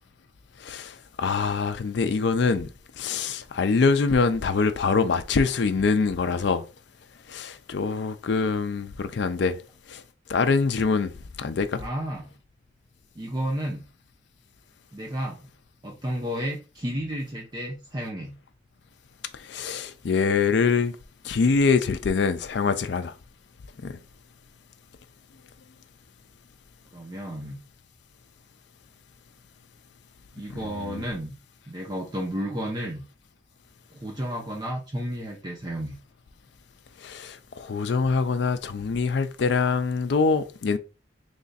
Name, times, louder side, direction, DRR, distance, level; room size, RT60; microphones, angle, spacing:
voice 1, 0.6-2.7 3.0-6.6 7.3-9.6 9.9-10.0 10.3-11.1 11.4-11.8 19.3-21.0 21.2-23.1 23.8-24.0 30.6-31.0 37.0-40.8, left 4 dB, 65° left, 0.4 m, -24 dB
voice 2, 11.8-12.3 13.2-13.9 14.9-15.4 15.8-18.4 26.9-27.6 30.3-31.3 31.7-33.0 33.9-36.0, equal, 20° right, 0.5 m, -32 dB
3.3 x 2.5 x 3.9 m
head